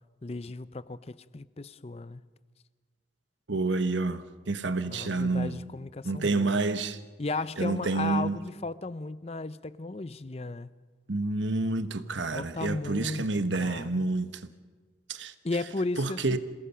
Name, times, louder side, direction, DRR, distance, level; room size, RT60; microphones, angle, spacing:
voice 1, 0.2-2.2 4.9-6.6 7.2-10.7 12.3-13.3 13.5-14.1 15.4-16.4, left 3 dB, 35° left, 0.5 m, -35 dB
voice 2, 3.5-5.7 6.0-7.0 7.6-8.4 11.1-14.4 15.1-15.3 16.0-16.4, right 3 dB, 80° right, 1.1 m, -29 dB
27.0 x 18.5 x 5.7 m
head